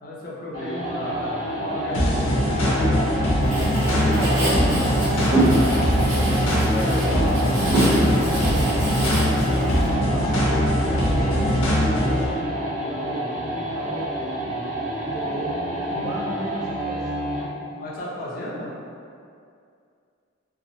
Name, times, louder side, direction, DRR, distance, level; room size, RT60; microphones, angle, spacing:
voice 1, 0.0-2.9 3.8-4.6 6.8-7.4 15.8-16.3 17.8-18.7, left 1 dB, 45° left, -6 dB, 0.5 m, -34 dB
sound 1, 0.5-17.6, right 1 dB, 40° right, 0.8 m, -29 dB
sound 2, 1.9-12.3, equal, 85° left, 0.6 m, -22 dB
Writing, 3.4-9.9, right 1 dB, 65° right, 0.9 m, -25 dB
voice 2, 4.1-8.7 9.4-14.0 15.0-15.6 15.8-17.4 18.5-18.6, right 1 dB, 20° right, -6 dB, 0.3 m, -35 dB
2.9 x 2.1 x 2.7 m, 2.3 s
head